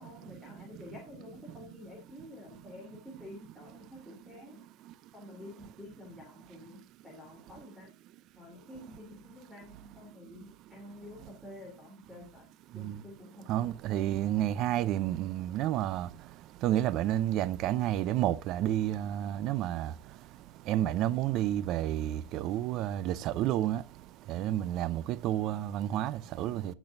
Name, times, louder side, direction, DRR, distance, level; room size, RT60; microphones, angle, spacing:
voice 1, 0.0-4.6 5.1-7.9 8.4-12.5 12.7-13.5 13.9-14.1, left 1 dB, ahead, 3.0 m, -49 dB
voice 2, 13.5-16.1 16.6-19.9 20.7-23.8 24.3-26.7, right 12 dB, 45° right, 0.5 m, -30 dB
15.0 x 6.2 x 2.6 m
supercardioid pair, 140°, 0 cm